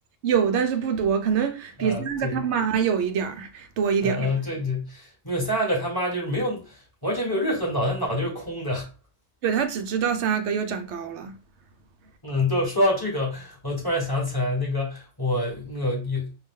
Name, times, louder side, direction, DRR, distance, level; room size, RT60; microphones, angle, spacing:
voice 1, 0.2-4.3 9.4-11.3, right 7 dB, 65° right, 0.9 m, -25 dB
voice 2, 1.8-2.4 4.0-8.9 12.2-16.3, left 1 dB, 15° left, 1.4 m, -26 dB
4.7 x 2.4 x 3.7 m
omnidirectional pair, 1.3 m